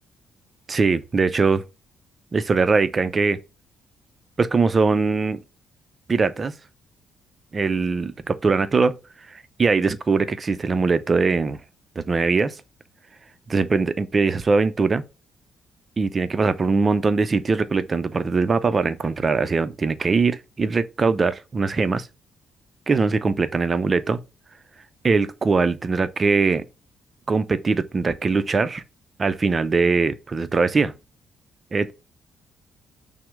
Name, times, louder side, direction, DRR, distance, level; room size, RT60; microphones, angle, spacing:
voice 1, 0.7-1.6 2.3-3.4 4.4-5.4 6.1-6.5 7.5-9.0 9.3-11.6 12.0-12.5 13.5-15.0 16.0-22.1 22.9-24.2 25.0-26.6 27.3-28.8 29.2-30.9 31.7-31.9, right 4 dB, 35° right, 0.4 m, -21 dB
6.0 x 2.0 x 3.4 m
cardioid pair, 90°, 0 cm